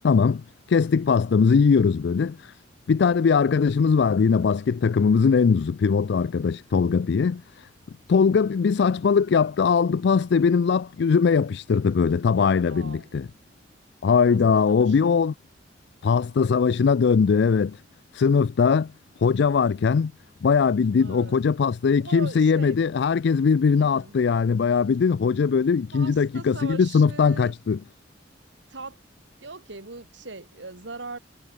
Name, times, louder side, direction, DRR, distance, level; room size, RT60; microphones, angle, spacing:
voice 1, 0.0-0.4 0.7-2.5 2.9-7.7 8.1-13.3 14.0-15.3 16.0-17.8 18.1-18.9 19.2-20.1 20.4-27.8, left 5 dB, 65° left, 0.4 m, -20 dB
voice 2, 12.7-13.2 14.3-14.4 14.7-15.2 21.0-21.4 22.0-22.8 23.8-24.1 25.9-27.5 28.7-29.0 29.4-31.2, right 3 dB, 75° right, 2.3 m, -40 dB
head